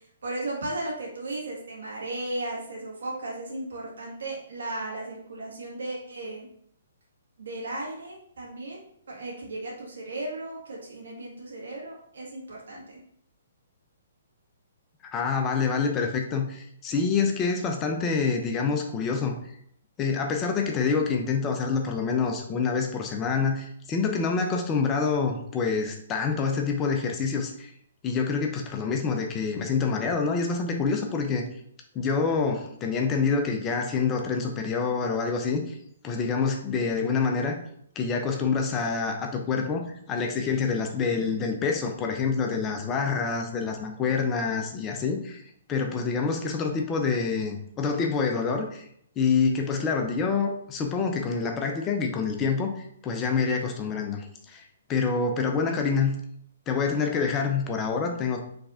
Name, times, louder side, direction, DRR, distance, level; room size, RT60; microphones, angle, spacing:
voice 1, 0.2-6.5 7.4-13.0, right 2 dB, 65° right, -3 dB, 1.6 m, -35 dB
voice 2, 15.1-19.3 20.0-27.7 28.0-31.4 31.9-35.8 36.0-37.6 38.0-45.4 45.7-48.8 49.2-52.7 53.0-54.6 54.9-56.1 56.7-58.4, left 5 dB, 20° left, 3 dB, 0.6 m, -26 dB
4.6 x 3.4 x 2.5 m, 0.69 s
figure-of-eight pair, 125°, 0 cm